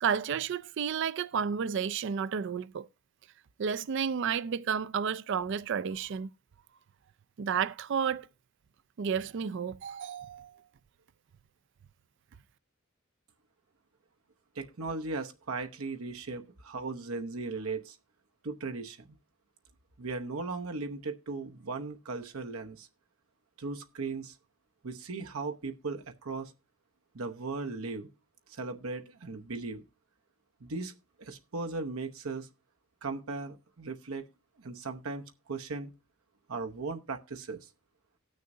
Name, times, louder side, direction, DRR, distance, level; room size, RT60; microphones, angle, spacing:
voice 1, 0.0-2.9 3.6-6.3 7.4-8.3 9.0-10.6, right 7 dB, 55° right, 0.4 m, -31 dB
voice 2, 14.5-18.0 18.4-19.2 20.0-22.9 23.6-24.4 24.8-26.5 27.1-28.1 28.5-29.8 30.6-30.9 31.2-32.5 33.0-34.2 34.6-35.9 36.5-37.7, right 3 dB, 80° right, 0.8 m, -37 dB
18.5 x 6.4 x 2.6 m
head